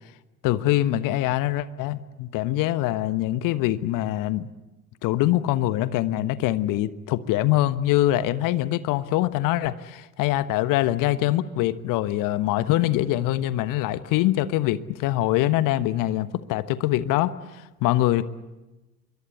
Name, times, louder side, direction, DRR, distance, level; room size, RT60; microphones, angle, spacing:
voice 1, 0.4-4.5 5.0-18.3, left 14 dB, 45° left, 14 dB, 1.3 m, -24 dB
26.0 x 23.0 x 8.5 m, 1.1 s
figure-of-eight pair, 75°, 45 cm